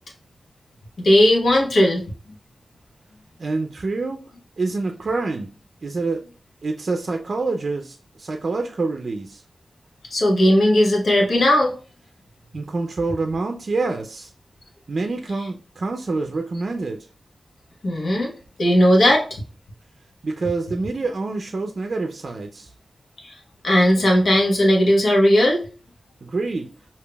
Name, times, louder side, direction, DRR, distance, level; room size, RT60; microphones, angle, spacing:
voice 1, 1.0-2.0 10.1-11.7 17.8-18.3 18.6-19.3 23.2-23.3 23.6-25.6, left 1 dB, 75° left, 1.1 m, -17 dB
voice 2, 3.4-4.2 4.6-5.5 5.8-6.2 6.6-9.4 12.5-14.3 14.9-17.1 20.2-22.7 26.2-26.7, right 3 dB, 65° right, 0.4 m, -26 dB
5.0 x 2.7 x 2.2 m
cardioid pair, 65°, 0 cm